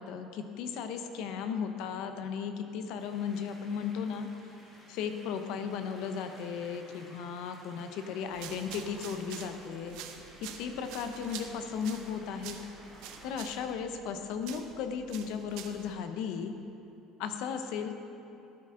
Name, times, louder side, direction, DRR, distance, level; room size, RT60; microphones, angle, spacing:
voice 1, 0.0-4.3 4.9-10.0 10.6-12.6 13.2-16.5 17.2-17.9, left 6 dB, 70° left, 7 dB, 0.8 m, -35 dB
sound 1, 3.0-13.4, equal, 15° left, 2.4 m, -55 dB
sound 2, 8.3-15.9, right 9 dB, 75° right, 0.8 m, -47 dB
13.5 x 8.6 x 3.8 m, 2.8 s
cardioid pair, 155°, 0 cm